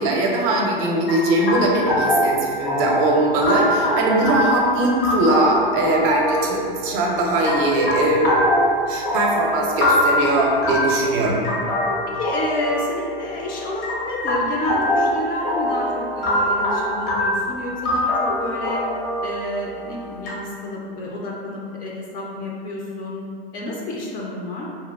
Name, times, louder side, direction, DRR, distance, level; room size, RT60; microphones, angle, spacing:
voice 1, 0.0-8.6 8.9-11.4, right 2 dB, 45° right, -1 dB, 0.5 m, -20 dB
sound 1, 1.1-20.3, left 1 dB, 75° left, 0.9 m, -24 dB
voice 2, 11.2-11.7 12.2-18.1 18.4-18.8 19.2-23.2 23.5-24.7, left 1 dB, 30° left, -3 dB, 0.4 m, -29 dB
2.8 x 2.2 x 2.2 m, 2.2 s
hypercardioid pair, 95°, 30 cm